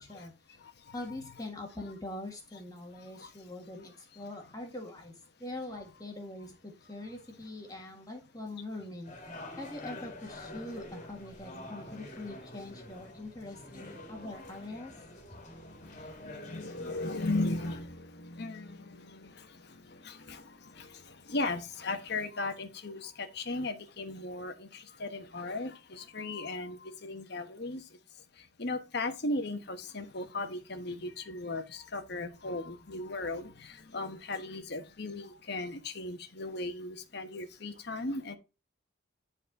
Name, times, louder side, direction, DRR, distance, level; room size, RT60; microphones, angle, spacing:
voice 1, 0.0-0.6 0.9-5.1 5.4-9.1 9.6-14.9, left 2 dB, 20° left, 1.6 m, -43 dB
voice 2, 0.6-0.9 2.9-3.3 14.0-14.1 15.4-27.9 28.1-38.4, left 2 dB, 50° left, 1.2 m, -37 dB
sound 1, 9.0-17.8, left 1 dB, 35° left, 2.1 m, -47 dB
10.5 x 4.3 x 4.1 m
head